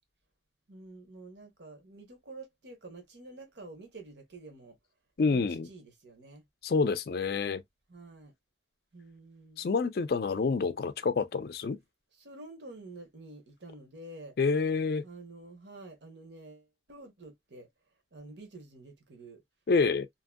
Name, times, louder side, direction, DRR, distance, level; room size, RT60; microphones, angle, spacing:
voice 1, 0.7-4.8 5.3-6.4 7.9-8.3 8.9-9.7 12.1-14.4 15.0-17.7 18.1-19.4, right 2 dB, 75° right, 1.0 m, -49 dB
voice 2, 5.2-5.7 6.6-7.6 9.6-11.8 14.4-15.1 19.7-20.1, left 4 dB, 55° left, 0.4 m, -28 dB
2.8 x 2.6 x 2.3 m
head